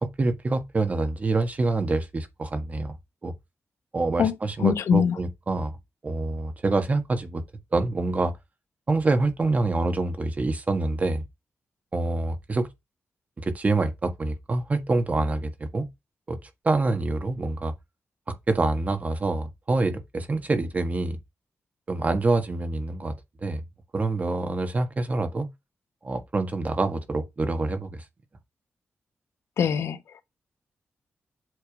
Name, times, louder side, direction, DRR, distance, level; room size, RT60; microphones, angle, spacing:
voice 1, 0.0-2.9 3.2-3.3 3.9-5.8 6.0-7.4 7.7-8.3 8.9-11.2 11.9-12.7 13.4-15.9 16.3-17.7 18.3-21.2 21.9-23.1 23.4-23.6 23.9-25.5 26.0-28.0, right 3 dB, 35° right, 1.5 m, -26 dB
voice 2, 4.1-5.2 29.6-30.2, left 7 dB, 85° left, 0.9 m, -24 dB
8.1 x 3.5 x 4.8 m
cardioid pair, 100°, 5 cm